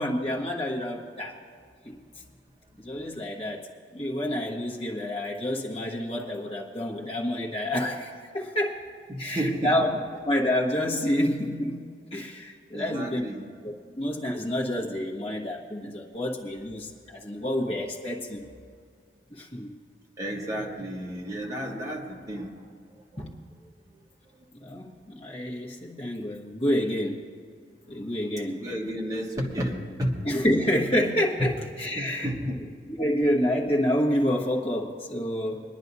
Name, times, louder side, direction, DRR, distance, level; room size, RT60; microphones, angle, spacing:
voice 1, 0.0-1.3 1.8-2.0 2.8-3.6 3.9-8.1 8.3-8.7 9.2-9.9 10.2-13.3 13.6-18.4 19.3-19.7 23.2-23.3 24.6-27.2 27.9-28.6 30.2-32.3 32.9-35.6, equal, 35° left, -2 dB, 1.3 m, -28 dB
voice 2, 9.1-9.8 12.7-13.4 17.7-17.8 20.2-22.5 23.1-23.3 28.5-30.1 31.4-31.5 31.9-32.6, equal, 20° right, -1 dB, 1.4 m, -31 dB
24.0 x 10.5 x 2.7 m, 2.1 s
head